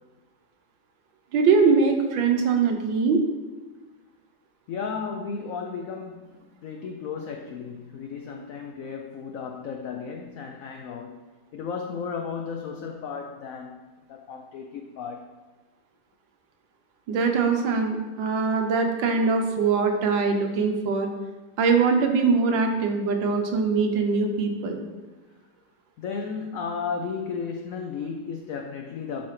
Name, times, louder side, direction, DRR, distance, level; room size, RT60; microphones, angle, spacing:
voice 1, 1.3-3.2 17.1-21.1 21.6-24.8, right 4 dB, 80° right, 4 dB, 1.5 m, -22 dB
voice 2, 4.7-13.8 14.1-15.3 26.0-29.3, left 5 dB, 90° left, 4 dB, 0.7 m, -34 dB
11.5 x 4.1 x 3.1 m, 1.2 s
omnidirectional pair, 2.1 m